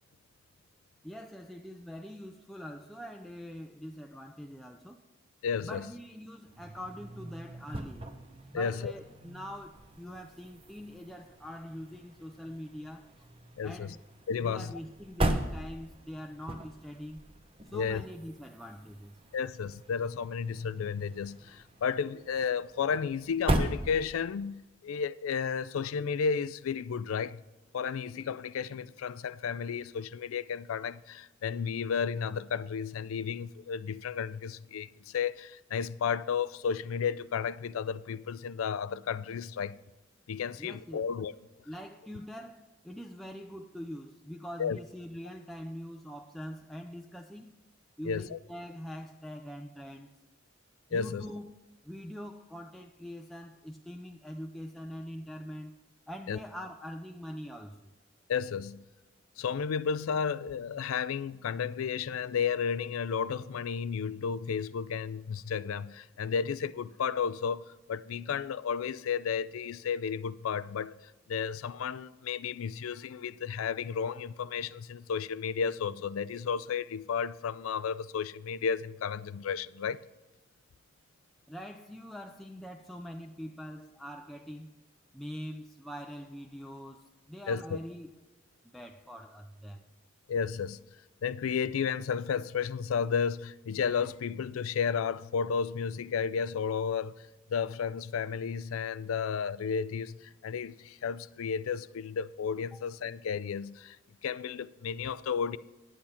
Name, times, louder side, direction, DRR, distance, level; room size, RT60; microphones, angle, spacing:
voice 1, 1.0-5.0 5.6-8.0 8.5-13.3 13.6-14.0 14.4-17.2 17.7-19.2 40.6-41.1 41.7-47.6 48.0-50.1 50.9-51.5 51.8-55.7 56.1-57.9 81.5-84.7 85.1-88.1 88.6-89.8, equal, ahead, 0.4 m, -43 dB
voice 2, 5.4-5.9 8.5-8.9 13.6-14.0 14.3-14.7 17.7-18.0 19.3-27.4 27.7-39.8 40.3-41.3 44.6-44.8 48.0-48.4 50.9-51.3 56.3-56.4 58.3-58.8 59.4-80.0 87.5-87.8 90.3-90.8 91.2-104.0 104.2-105.6, left 6 dB, 85° left, 0.4 m, -33 dB
sound 1, 6.4-24.5, right 1 dB, 25° right, 0.8 m, -38 dB
10.0 x 8.5 x 4.3 m
head